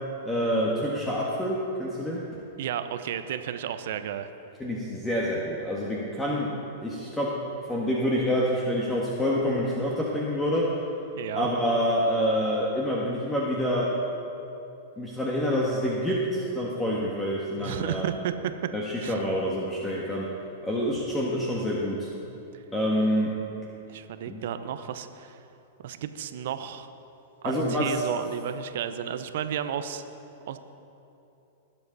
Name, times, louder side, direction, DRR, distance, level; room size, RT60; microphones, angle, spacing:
voice 1, 0.2-2.2 4.6-7.3 7.7-10.8 11.3-14.0 15.0-18.1 18.7-20.3 20.6-22.1 22.7-23.3 24.3-24.4 27.4-28.0, equal, 10° left, -4 dB, 1.6 m, -27 dB
voice 2, 2.6-4.3 11.2-11.5 17.6-18.7 19.0-19.2 22.5-22.6 23.9-25.4 25.8-26.9 27.4-30.0 30.5-30.6, right 9 dB, 65° right, 10 dB, 0.7 m, -33 dB
20.5 x 7.7 x 4.1 m, 2.9 s
hypercardioid pair, 110°, 0 cm